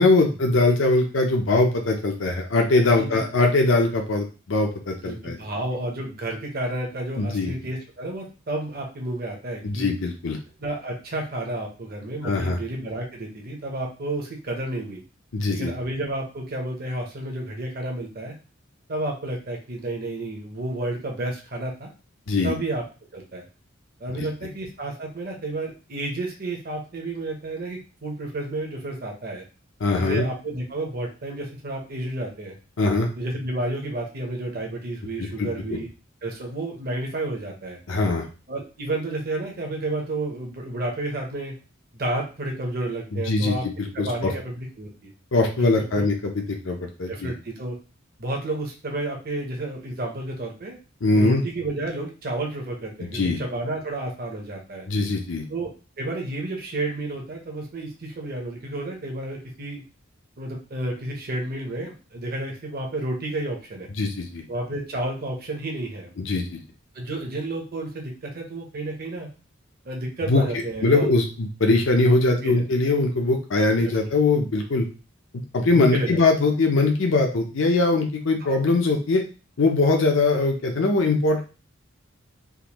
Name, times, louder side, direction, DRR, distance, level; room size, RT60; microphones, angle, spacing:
voice 1, 0.0-5.4 7.2-7.5 9.6-10.4 12.2-12.6 15.3-15.7 22.3-22.6 29.8-30.2 32.8-33.1 35.2-35.8 37.9-38.2 43.1-44.3 45.3-47.3 51.0-51.4 53.0-53.4 54.9-55.4 64.0-64.4 66.2-66.6 70.3-70.4 70.8-74.9 75.5-79.2 79.6-81.4, left 2 dB, 70° left, 2 dB, 0.6 m, -21 dB
voice 2, 5.0-9.9 10.6-15.0 15.5-18.3 18.9-21.9 22.4-22.8 23.1-23.4 24.0-29.4 30.0-32.5 33.2-35.9 36.2-37.8 38.5-41.5 41.9-43.7 43.9-45.1 45.6-46.0 47.1-47.8 48.2-50.7 51.1-54.9 55.5-55.7 56.0-59.8 60.4-63.9 64.5-66.1 66.9-69.3 69.8-71.1 72.4-72.6 74.0-74.1 75.6-76.2 78.4-78.6, right 2 dB, 50° right, 0 dB, 0.9 m, -31 dB
3.6 x 2.5 x 3.0 m, 0.34 s
head